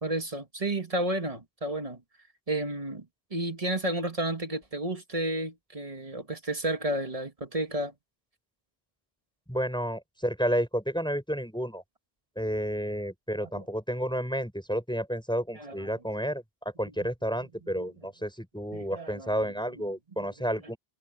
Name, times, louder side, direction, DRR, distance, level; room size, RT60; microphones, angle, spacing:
voice 1, 0.0-2.0 2.5-7.9 13.4-13.6 15.6-15.9 17.8-17.9 18.7-19.3, right 1 dB, 35° right, 1.9 m, -32 dB
voice 2, 9.5-11.8 12.4-16.4 16.8-20.8, equal, 5° left, 7.3 m, -31 dB
omnidirectional pair, 1.0 m